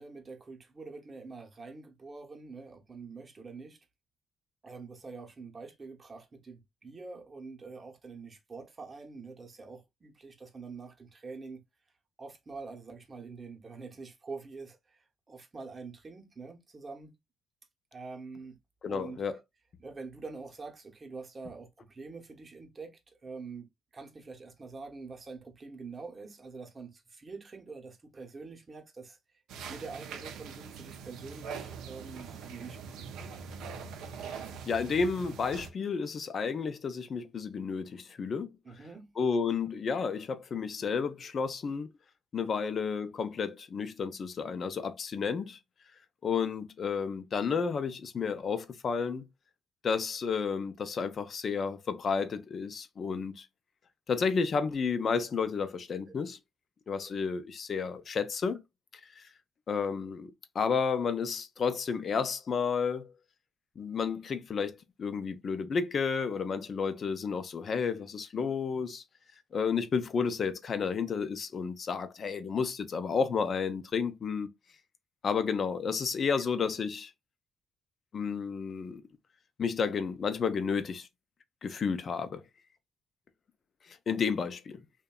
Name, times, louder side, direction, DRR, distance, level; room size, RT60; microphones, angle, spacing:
voice 1, 0.0-3.8 4.6-11.6 12.2-17.2 17.9-18.6 18.9-19.4 19.8-23.7 23.9-29.2 29.7-33.4 38.6-39.1 57.0-57.1 72.0-72.1 72.3-72.5 76.3-76.4, right 4 dB, 35° right, 0.7 m, -45 dB
voice 2, 18.8-19.4 34.2-38.5 39.2-41.9 42.3-45.6 46.2-49.3 49.8-53.5 54.1-56.4 56.9-58.6 59.2-59.3 59.7-63.1 63.8-69.0 69.5-74.5 75.2-77.1 78.1-79.0 79.6-81.1 81.6-82.4 83.9-84.8, left 5 dB, 50° left, 0.4 m, -31 dB
sound 1, 29.5-35.7, right 6 dB, 80° right, 0.4 m, -43 dB
2.7 x 2.1 x 2.2 m
supercardioid pair, 70°, 0 cm